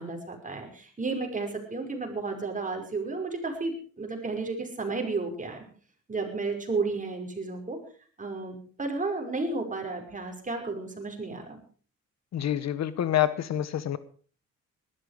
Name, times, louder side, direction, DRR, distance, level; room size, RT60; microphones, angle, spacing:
voice 1, 0.0-5.6 6.1-7.8 8.2-11.6, right 3 dB, 25° right, 3 dB, 5.5 m, -32 dB
voice 2, 12.3-14.0, left 11 dB, 60° left, 15 dB, 1.2 m, -27 dB
19.0 x 13.0 x 5.0 m, 0.43 s
cardioid pair, 90°, 30 cm